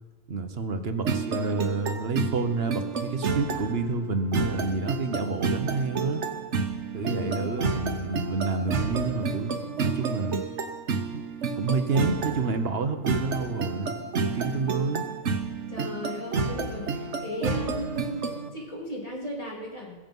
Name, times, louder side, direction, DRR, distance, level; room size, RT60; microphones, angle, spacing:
voice 1, 0.3-6.2 6.9-10.4 11.1-11.3 11.6-15.0, right 4 dB, 60° right, 8 dB, 1.3 m, -29 dB
sound 1, 1.0-18.5, right 4 dB, 80° right, 1.4 m, -30 dB
voice 2, 7.0-7.6 14.3-14.5 15.7-20.0, left 1 dB, 30° left, -3 dB, 3.3 m, -36 dB
21.5 x 7.6 x 5.4 m, 1.3 s
omnidirectional pair, 1.2 m